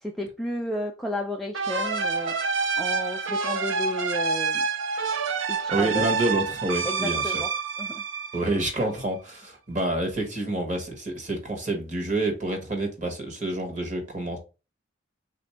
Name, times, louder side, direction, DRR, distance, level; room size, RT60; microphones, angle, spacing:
voice 1, 0.0-4.7 5.5-6.1 6.9-7.5 7.8-8.0, equal, ahead, 0.3 m, -32 dB
sound 1, 1.5-9.0, right 4 dB, 85° right, 0.5 m, -28 dB
voice 2, 5.7-7.4 8.3-14.4, right 2 dB, 40° right, 1.0 m, -28 dB
3.5 x 2.5 x 4.2 m
head